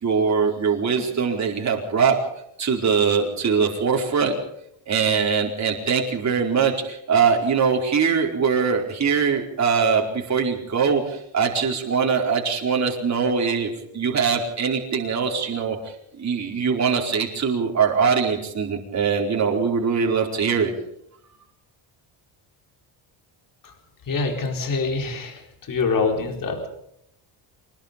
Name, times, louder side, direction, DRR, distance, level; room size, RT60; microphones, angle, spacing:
voice 1, 0.0-2.2 2.6-4.3 4.9-20.7, right 6 dB, 35° right, 0 dB, 4.7 m, -22 dB
voice 2, 24.1-26.7, left 4 dB, 40° left, 4 dB, 4.5 m, -25 dB
25.5 x 20.5 x 5.4 m, 0.76 s
cardioid pair, 150°, 49 cm